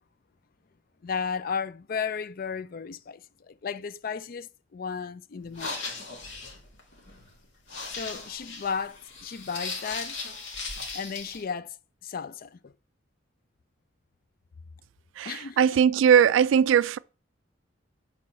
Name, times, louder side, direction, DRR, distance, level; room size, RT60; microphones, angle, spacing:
voice 1, 1.0-5.8 7.9-10.2 10.9-11.8 12.0-12.7 15.2-15.8, left 6 dB, 50° left, 0.4 m, -34 dB
sound 1, 5.4-11.4, left 4 dB, 70° left, 1.9 m, -38 dB
voice 2, 15.2-17.0, right 8 dB, 85° right, 0.3 m, -20 dB
6.8 x 4.2 x 4.3 m
head